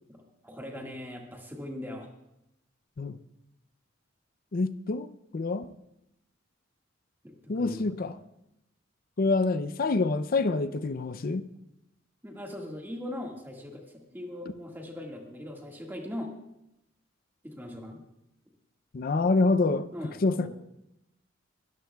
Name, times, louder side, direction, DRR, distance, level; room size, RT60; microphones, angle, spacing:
voice 1, 0.1-2.1 7.2-8.1 12.2-13.8 14.1-16.3 17.4-18.0 19.9-20.5, left 1 dB, 10° right, 1.7 m, -40 dB
voice 2, 4.5-5.1 5.3-5.7 7.5-8.1 9.2-11.4 18.9-19.9 20.2-20.5, left 3 dB, 50° left, 0.5 m, -26 dB
21.5 x 13.5 x 2.3 m
head